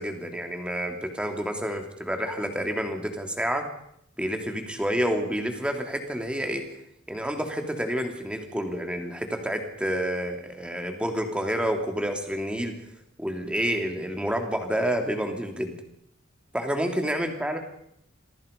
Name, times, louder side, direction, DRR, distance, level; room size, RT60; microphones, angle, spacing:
voice 1, 0.0-3.7 4.2-6.6 7.1-12.7 13.2-15.8 16.5-17.6, equal, 5° right, 4 dB, 3.2 m, -29 dB
27.5 x 23.0 x 5.5 m, 0.74 s
head